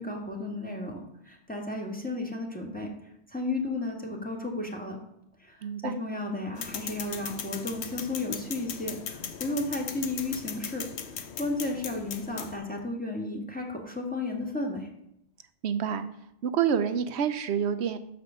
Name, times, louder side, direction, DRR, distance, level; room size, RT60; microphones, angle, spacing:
voice 1, 0.0-2.9 3.3-5.0 5.4-10.9 11.3-14.9, left 2 dB, 10° left, -1 dB, 1.4 m, -33 dB
voice 2, 5.6-6.0 15.6-16.1 16.4-18.0, right 8 dB, 75° right, 11 dB, 0.9 m, -27 dB
sound 1, 6.6-12.6, left 7 dB, 70° left, 1.0 m, -38 dB
6.0 x 5.2 x 6.8 m, 0.80 s
omnidirectional pair, 1.2 m